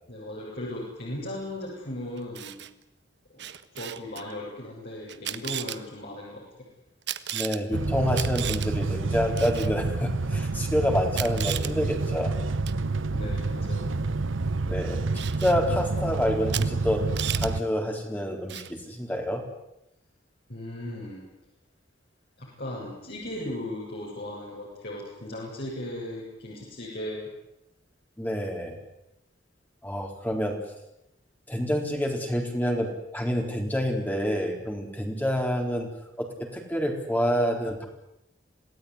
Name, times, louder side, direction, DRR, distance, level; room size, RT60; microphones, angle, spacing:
voice 1, 0.1-2.6 3.3-3.5 3.8-6.7 13.1-13.9 20.5-21.2 22.4-27.3, left 1 dB, 55° left, -5 dB, 7.8 m, -37 dB
Camera, 2.2-2.7 3.4-4.2 5.1-5.8 7.1-7.6 8.1-8.7 9.4-9.7 10.6-10.7 11.1-11.7 12.7-12.8 15.2-15.6 16.5-16.7 16.9-17.5 18.5-18.7, right 12 dB, 60° right, 1.3 m, -34 dB
voice 2, 7.3-12.3 14.7-15.0 15.4-17.0 17.4-19.4 28.2-28.8 29.8-30.6 31.5-35.9 36.2-37.9, equal, 10° left, 2 dB, 4.0 m, -27 dB
sound 1, 7.7-17.6, right 3 dB, 90° right, 0.9 m, -28 dB
28.0 x 18.5 x 9.9 m, 0.85 s
head